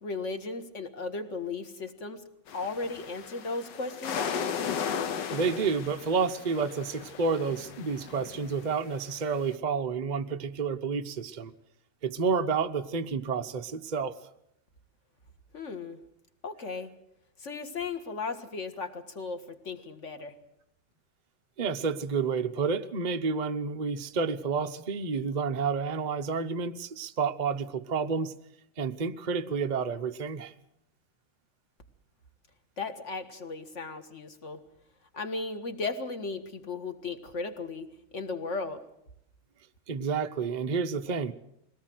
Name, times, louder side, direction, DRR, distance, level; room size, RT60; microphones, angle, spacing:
voice 1, 0.0-2.2 2.5-4.3 15.5-16.0 16.4-16.9 17.4-20.3 32.8-34.6 35.1-37.9 38.1-38.8, left 3 dB, 40° left, 8 dB, 1.8 m, -36 dB
sound 1, 2.5-9.5, left 7 dB, 65° left, 1.7 m, -36 dB
voice 2, 5.3-11.5 12.0-14.1 21.6-28.3 28.8-30.5 39.9-41.3, right 5 dB, 55° right, 6 dB, 0.4 m, -30 dB
22.0 x 18.0 x 7.8 m, 0.79 s
omnidirectional pair, 2.1 m